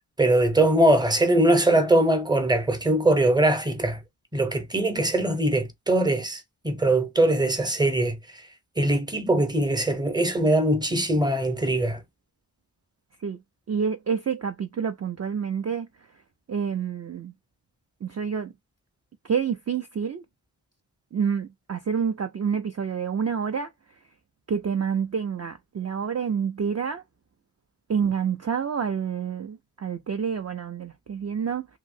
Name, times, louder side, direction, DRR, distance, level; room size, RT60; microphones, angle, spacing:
voice 1, 0.2-4.0 4.3-8.2 8.8-12.0, right 1 dB, 10° right, 0.7 m, -22 dB
voice 2, 13.7-15.9 16.5-17.3 18.0-18.5 19.2-20.2 21.1-23.7 24.5-27.0 27.9-31.7, right 7 dB, 40° right, 0.4 m, -28 dB
2.9 x 2.7 x 2.6 m
wide cardioid pair, 70°, 44 cm